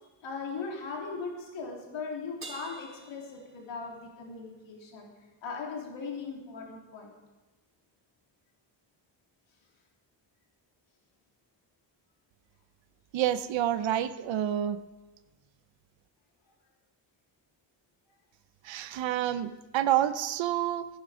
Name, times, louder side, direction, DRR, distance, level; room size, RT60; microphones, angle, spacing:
voice 1, 0.2-5.1 5.4-7.1, left 4 dB, 80° left, 0 dB, 3.1 m, -39 dB
Crash cymbal, 2.4-4.1, right 2 dB, 25° right, 4.1 m, -47 dB
voice 2, 13.1-14.8 18.6-20.9, right 11 dB, 85° right, 12 dB, 0.8 m, -28 dB
17.0 x 11.0 x 4.9 m, 1.2 s
cardioid pair, 90°, 44 cm